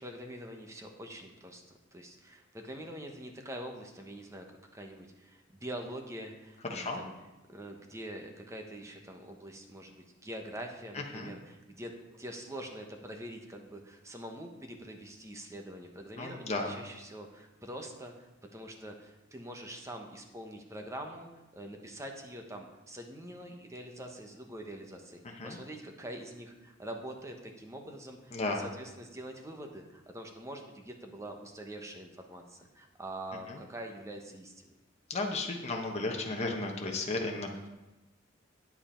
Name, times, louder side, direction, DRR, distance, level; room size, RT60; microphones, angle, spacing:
voice 1, 0.0-7.1 7.5-34.7 37.5-37.6, right 1 dB, 15° right, 3 dB, 1.1 m, -44 dB
voice 2, 6.6-7.0 11.1-11.3 16.2-16.8 25.3-25.6 28.3-28.7 33.5-33.6 35.1-37.7, left 2 dB, 35° left, 1 dB, 1.1 m, -34 dB
9.4 x 7.8 x 4.4 m, 1.0 s
head